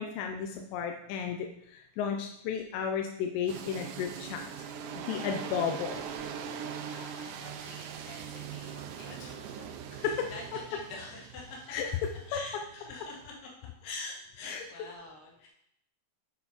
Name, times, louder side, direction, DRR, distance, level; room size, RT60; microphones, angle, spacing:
voice 1, 0.0-4.4 5.0-6.0 10.0-10.3 11.7-11.9 12.3-12.4 14.4-14.6, left 7 dB, 90° left, 3 dB, 2.9 m, -33 dB
sound 1, 3.5-13.3, right 7 dB, 90° right, 3.0 m, -42 dB
voice 2, 6.6-9.7 10.0-11.7 12.1-13.5 13.8-15.5, left 3 dB, 70° left, -2 dB, 3.5 m, -46 dB
11.0 x 4.5 x 4.1 m, 0.74 s
omnidirectional pair, 5.0 m